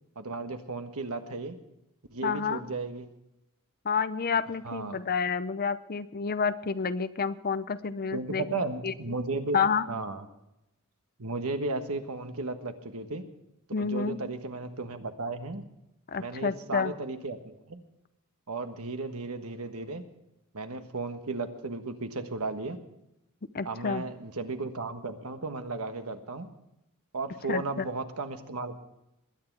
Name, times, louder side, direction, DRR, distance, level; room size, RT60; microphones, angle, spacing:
voice 1, 0.1-1.6 2.1-3.1 4.6-5.0 8.1-10.2 11.2-13.2 13.8-15.6 16.2-17.8 18.5-20.0 20.5-22.8 23.6-26.5 27.1-28.8, right 3 dB, 70° right, 7 dB, 1.4 m, -35 dB
voice 2, 2.2-2.6 3.8-8.4 8.8-8.9 9.5-9.9 13.7-14.2 16.1-16.9 23.5-24.0 27.5-27.9, left 5 dB, 45° left, 14 dB, 0.6 m, -29 dB
21.0 x 9.6 x 4.7 m, 0.87 s
head